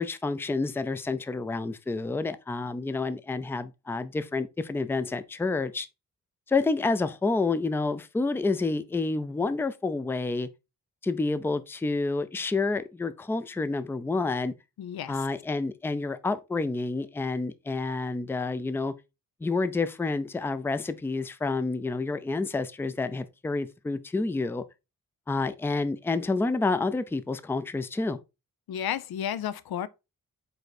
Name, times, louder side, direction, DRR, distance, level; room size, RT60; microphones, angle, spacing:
voice 1, 0.0-5.9 6.5-10.5 11.0-14.5 15.1-18.9 19.4-24.6 25.3-28.2, left 3 dB, 5° left, 0.4 m, -29 dB
voice 2, 14.8-15.2 28.7-29.9, left 10 dB, 85° left, 0.6 m, -32 dB
5.4 x 4.4 x 4.0 m
wide cardioid pair, 170°, 36 cm